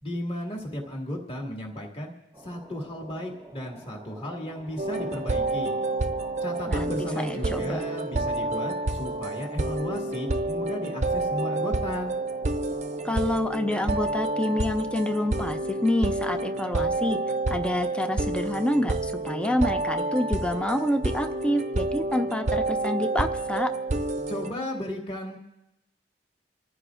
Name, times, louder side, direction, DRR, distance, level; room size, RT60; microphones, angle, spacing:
voice 1, 0.0-2.1 2.4-5.7 6.4-12.1 24.3-25.4, left 1 dB, 35° left, -1 dB, 2.0 m, -34 dB
sound 1, 2.3-14.3, right 1 dB, 15° right, 0.9 m, -48 dB
sound 2, 4.8-24.5, right 2 dB, 40° right, 0.6 m, -29 dB
voice 2, 6.7-7.8 13.0-17.2 17.5-23.7, left 1 dB, 5° left, 7 dB, 0.5 m, -27 dB
28.0 x 15.0 x 2.5 m, 0.91 s
head